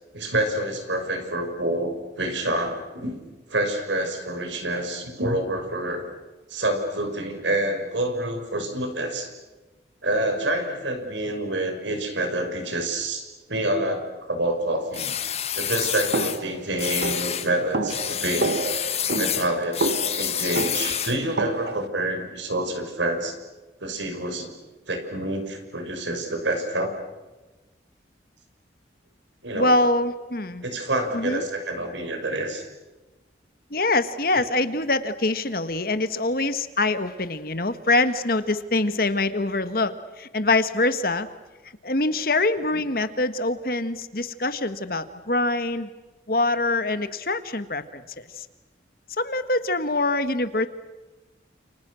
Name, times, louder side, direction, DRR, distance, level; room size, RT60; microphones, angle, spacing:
voice 1, 0.1-3.2 3.5-6.1 6.5-9.3 10.0-13.2 13.5-15.1 15.6-18.6 19.2-19.9 20.2-23.4 23.8-24.5 24.9-26.9 29.4-29.8 30.6-32.7 34.3-34.4 42.7-42.9, right 1 dB, 85° right, 5 dB, 6.1 m, -27 dB
sound 1, 14.9-16.4 16.8-17.5 17.9-21.2, left 10 dB, 35° left, 1.5 m, -28 dB
sound 2, 16.1-21.9, right 2 dB, 65° right, 1.8 m, -29 dB
voice 2, 29.5-30.6 31.1-31.4 33.7-41.3 41.8-45.9 46.3-48.4 49.2-50.7, left 2 dB, 50° left, 11 dB, 1.6 m, -24 dB
29.5 x 29.0 x 6.4 m, 1.2 s
head